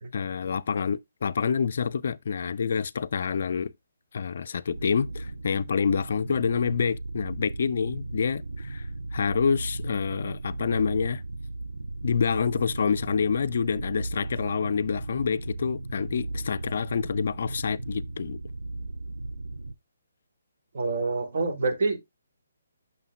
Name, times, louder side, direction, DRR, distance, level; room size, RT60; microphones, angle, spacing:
voice 1, 0.1-3.7 4.1-8.9 9.1-11.2 12.0-18.4, left 6 dB, 50° left, 0.4 m, -27 dB
sound 1, 4.7-19.7, right 2 dB, 75° right, 0.6 m, -36 dB
voice 2, 20.7-22.0, right 3 dB, 50° right, 1.7 m, -26 dB
9.0 x 6.3 x 2.2 m
figure-of-eight pair, 135°, 0 cm